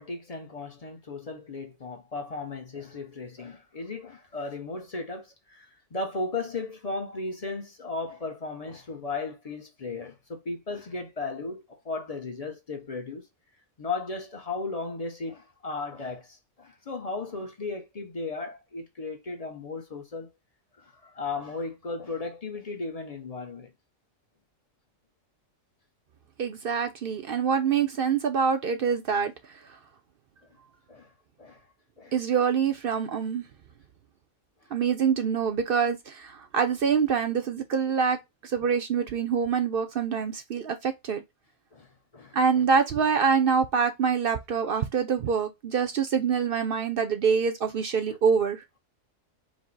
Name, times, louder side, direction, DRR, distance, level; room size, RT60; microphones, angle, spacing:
voice 1, 0.0-13.2 13.8-20.3 20.8-23.7 30.9-31.1 31.4-31.6 32.0-32.1 41.7-41.9 42.1-42.6 48.1-48.2, left 3 dB, 40° left, 0.6 m, -36 dB
voice 2, 26.4-29.3 32.1-33.4 34.7-41.2 42.3-48.6, right 6 dB, 60° right, 0.6 m, -25 dB
5.0 x 2.0 x 3.8 m
omnidirectional pair, 1.4 m